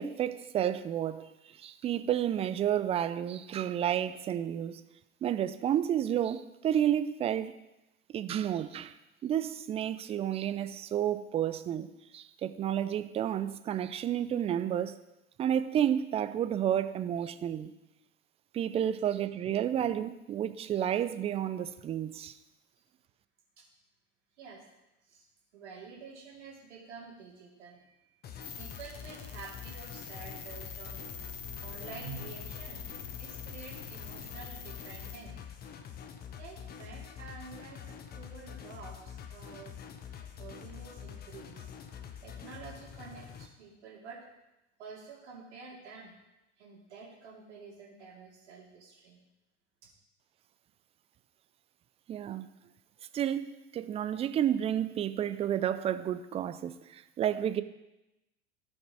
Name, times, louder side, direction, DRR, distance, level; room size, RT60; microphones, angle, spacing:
voice 1, 0.0-4.8 5.2-7.5 8.1-8.9 9.2-11.9 12.1-15.0 15.4-17.7 18.5-22.3 52.1-52.5 53.1-57.6, right 10 dB, 15° right, 12 dB, 0.4 m, -31 dB
voice 2, 25.5-28.1 28.6-31.1 31.5-32.8 33.2-35.4 36.4-39.8 40.1-41.7 42.2-44.2 44.8-46.1 46.6-49.2, right 5 dB, 65° right, -3 dB, 2.4 m, -49 dB
sound 1, 28.2-43.5, left 8 dB, 25° left, 0.8 m, -46 dB
sound 2, 28.4-35.2, left 6 dB, 80° left, 1.2 m, -45 dB
13.0 x 5.3 x 4.8 m, 0.94 s
figure-of-eight pair, 80°, 36 cm